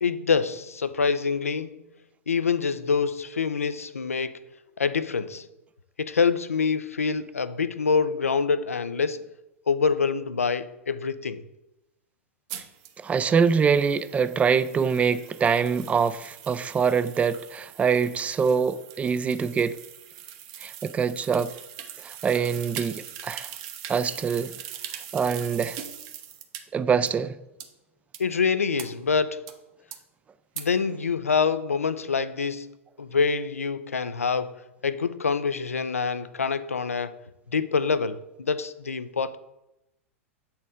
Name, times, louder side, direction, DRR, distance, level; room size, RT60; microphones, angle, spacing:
voice 1, 0.0-1.8 2.3-4.4 4.8-5.4 6.0-9.2 9.7-11.4 28.2-29.4 30.6-34.5 34.8-37.2 37.5-39.4, left 5 dB, 90° left, 0.4 m, -26 dB
sound 1, 12.5-26.6 27.1-27.2 27.6-27.7 28.1-28.2 28.8-28.9 29.5-29.6 29.9-30.0 30.6-30.7, right 10 dB, 45° right, 0.8 m, -41 dB
voice 2, 13.0-19.8 20.6-21.5 22.0-23.5 23.9-24.5 25.1-25.8 26.7-27.4, right 6 dB, 20° right, 0.3 m, -24 dB
7.8 x 4.3 x 3.7 m
hypercardioid pair, 100°, 7 cm